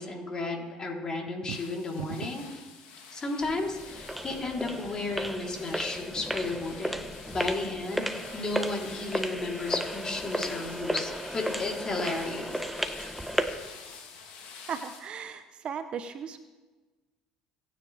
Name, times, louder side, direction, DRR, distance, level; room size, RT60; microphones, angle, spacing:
voice 1, 0.0-2.6 3.1-8.1 8.3-12.6, left 2 dB, 30° left, -1 dB, 3.8 m, -33 dB
sound 1, 1.3-2.6, right 15 dB, 85° right, 0.5 m, -39 dB
sound 2, 1.5-15.0, left 5 dB, 75° left, 3.2 m, -48 dB
sound 3, 3.4-13.7, equal, 5° right, 1.1 m, -34 dB
voice 2, 14.7-16.4, right 7 dB, 45° right, 10 dB, 0.9 m, -37 dB
28.5 x 9.8 x 3.6 m, 1.2 s
hypercardioid pair, 75°, 2 cm